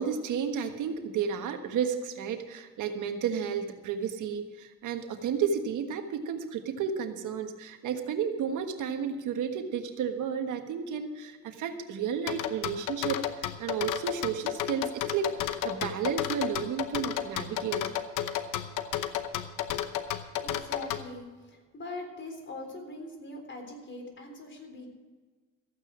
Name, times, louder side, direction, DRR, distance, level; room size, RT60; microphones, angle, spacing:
voice 1, 0.0-17.8, right 7 dB, 80° right, 6 dB, 1.5 m, -32 dB
sound 1, 12.3-21.0, left 11 dB, 90° left, 0.9 m, -32 dB
voice 2, 20.3-24.9, left 2 dB, 40° left, 4 dB, 3.8 m, -42 dB
14.5 x 9.1 x 6.1 m, 1.4 s
cardioid pair, 90°, 30 cm